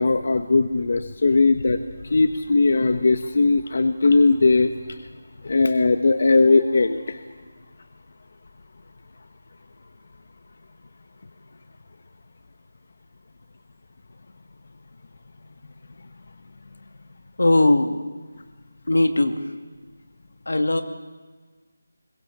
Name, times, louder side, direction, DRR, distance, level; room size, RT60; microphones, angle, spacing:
voice 1, 0.0-1.8 2.0-5.0 5.4-7.2, left 3 dB, 55° left, 9 dB, 1.1 m, -19 dB
voice 2, 17.4-18.0 18.9-19.4 20.5-20.8, left 2 dB, 90° left, 7 dB, 2.1 m, -19 dB
22.0 x 19.0 x 7.3 m, 1.4 s
figure-of-eight pair, 170°, 0 cm